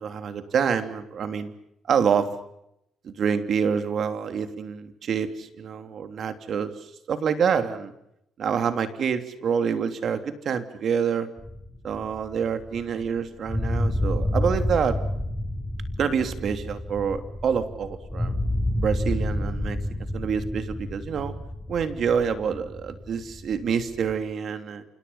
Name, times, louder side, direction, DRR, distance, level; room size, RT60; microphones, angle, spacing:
voice 1, 0.0-1.5 1.9-2.4 3.0-7.9 8.4-11.3 11.8-15.0 16.0-18.4 18.7-19.8 20.1-21.3 21.7-24.8, right 7 dB, 60° right, 9 dB, 3.1 m, -27 dB
sound 1, 11.4-13.2 13.4-24.2, left 1 dB, 10° left, 7.1 m, -29 dB
29.5 x 27.5 x 5.7 m, 0.79 s
cardioid pair, 90°, 0 cm